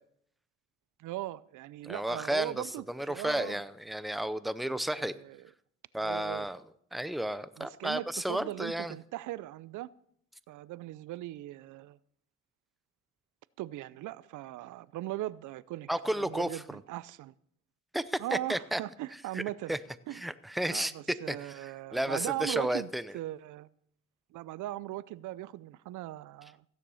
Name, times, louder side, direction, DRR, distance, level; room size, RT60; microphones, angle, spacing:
voice 1, 1.0-3.6 4.7-5.5 6.0-6.5 7.6-9.9 10.5-12.0 13.6-15.9 16.2-17.3 18.2-19.8 20.1-20.2 20.7-23.7 24.3-26.6, right 15 dB, 80° right, 0.5 m, -39 dB
voice 2, 1.8-5.1 5.9-6.6 6.9-8.9 15.9-16.6 17.9-18.8 19.3-19.4 19.7-19.8 20.1-20.9 21.3-21.5 21.9-23.0, right 1 dB, ahead, 0.7 m, -32 dB
15.5 x 9.9 x 5.6 m
cardioid pair, 90°, 30 cm